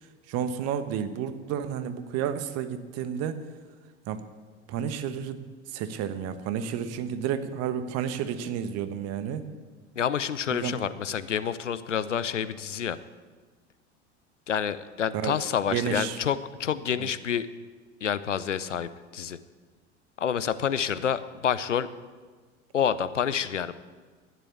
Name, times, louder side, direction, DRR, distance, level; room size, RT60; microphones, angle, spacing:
voice 1, 0.3-3.4 4.1-4.2 4.7-9.4 10.5-10.7 15.2-15.4 15.7-16.2 17.0-17.1, right 8 dB, 45° right, 10 dB, 1.2 m, -31 dB
voice 2, 10.0-13.0 14.5-17.5 18.0-19.4 20.2-21.9 22.7-23.7, left 8 dB, 85° left, 15 dB, 0.7 m, -28 dB
12.5 x 10.0 x 8.6 m, 1.5 s
figure-of-eight pair, 75°, 36 cm